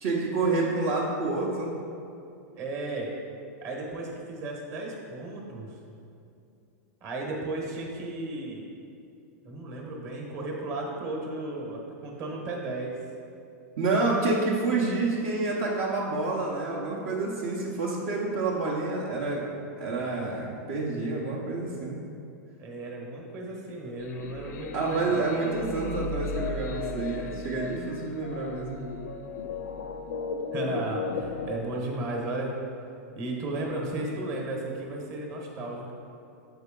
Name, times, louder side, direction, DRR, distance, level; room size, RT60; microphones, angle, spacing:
voice 1, 0.0-1.7 13.8-19.5 19.8-22.0 24.7-28.8, right 3 dB, 55° right, -4 dB, 0.9 m, -28 dB
voice 2, 2.6-3.1 3.6-5.8 7.0-8.7 9.4-13.0 22.6-25.3 30.5-32.5 33.1-35.9, right 2 dB, 35° right, -1 dB, 1.2 m, -34 dB
sound 1, 24.0-31.6, left 3 dB, 70° left, 0.5 m, -35 dB
7.8 x 4.5 x 3.7 m, 2.6 s
supercardioid pair, 145°, 9 cm